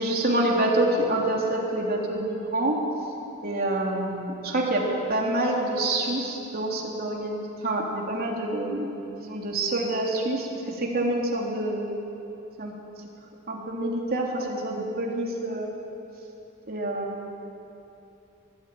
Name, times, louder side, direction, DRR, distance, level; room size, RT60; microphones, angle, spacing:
voice 1, 0.0-2.8 3.4-8.9 9.2-11.9 12.6-12.7 13.5-15.7 16.7-17.3, right 1 dB, 50° right, -2 dB, 3.4 m, -27 dB
21.5 x 13.5 x 9.3 m, 2.9 s
head